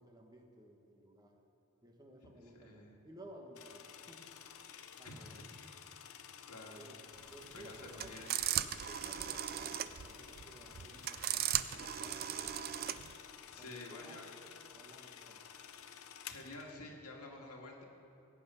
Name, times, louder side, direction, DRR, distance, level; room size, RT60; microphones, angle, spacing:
voice 1, 0.0-1.4 1.8-4.3 5.0-5.4 6.7-7.0 7.3-8.3 8.8-12.7 13.5-14.3 14.7-15.4, right 1 dB, 15° right, 2 dB, 1.2 m, -56 dB
voice 2, 2.5-2.9 5.0-5.8 6.5-6.8 7.5-8.3 13.5-14.3 16.3-17.8, left 2 dB, 85° left, 0 dB, 1.9 m, -50 dB
sound 1, 3.5-16.7, left 8 dB, 65° left, 0.7 m, -53 dB
sound 2, 7.2-13.1, right 11 dB, 40° right, 0.4 m, -38 dB
16.5 x 8.7 x 5.6 m, 2.9 s
head